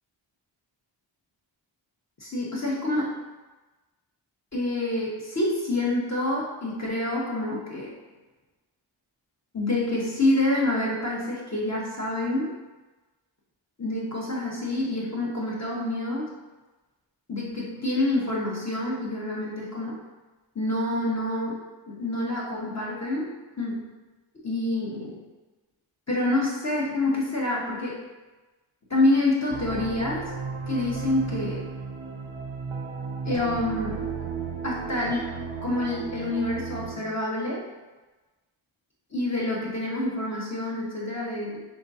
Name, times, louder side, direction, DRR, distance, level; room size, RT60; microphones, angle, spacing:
voice 1, 2.2-3.2 4.5-7.9 9.5-12.5 13.8-16.3 17.3-20.0 20.5-21.6 21.9-23.9 24.4-25.2 26.1-28.0 28.9-30.3 30.7-31.7 33.2-34.1 34.6-37.6 39.1-41.6, left 1 dB, 35° left, -5 dB, 1.3 m, -27 dB
sound 1, 29.5-37.0, right 5 dB, 85° right, 0.6 m, -34 dB
4.8 x 3.7 x 2.7 m, 1.2 s
wide cardioid pair, 75°, 47 cm